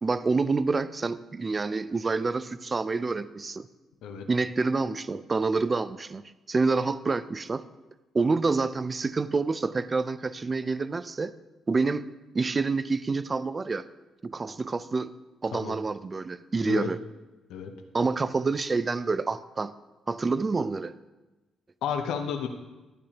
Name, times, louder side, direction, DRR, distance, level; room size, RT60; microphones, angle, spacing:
voice 1, 0.0-3.7 4.3-6.2 6.5-7.6 8.1-11.3 11.7-12.0 12.3-13.8 14.2-15.1 15.4-17.0 17.9-19.7 20.1-20.9, right 4 dB, 30° right, 15 dB, 0.4 m, -27 dB
voice 2, 21.8-22.5, left 7 dB, 85° left, 4 dB, 0.7 m, -31 dB
12.0 x 8.5 x 2.9 m, 1.1 s
cardioid pair, 90°, 0 cm